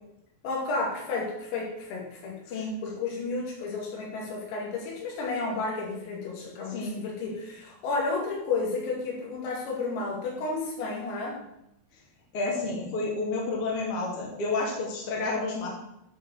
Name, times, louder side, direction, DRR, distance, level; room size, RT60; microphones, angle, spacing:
voice 1, 0.4-11.4, left 3 dB, 85° left, -1 dB, 5.0 m, -32 dB
voice 2, 12.3-15.7, left 3 dB, 35° left, -2 dB, 2.5 m, -30 dB
11.5 x 5.0 x 6.5 m, 0.81 s
omnidirectional pair, 5.9 m